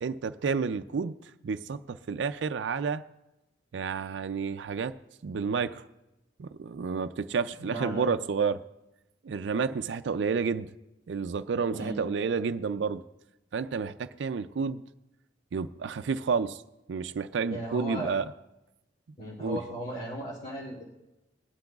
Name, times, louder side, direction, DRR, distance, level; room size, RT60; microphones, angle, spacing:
voice 1, 0.0-3.0 3.7-5.0 5.2-5.8 6.4-8.6 9.2-10.7 11.1-13.0 13.5-14.8 15.5-16.6 16.9-18.3 19.4-19.6, right 5 dB, 70° right, 0.4 m, -30 dB
voice 2, 7.6-8.0 11.7-12.0 17.5-18.1 19.2-20.8, equal, 40° left, 2.6 m, -36 dB
20.5 x 11.5 x 2.4 m
head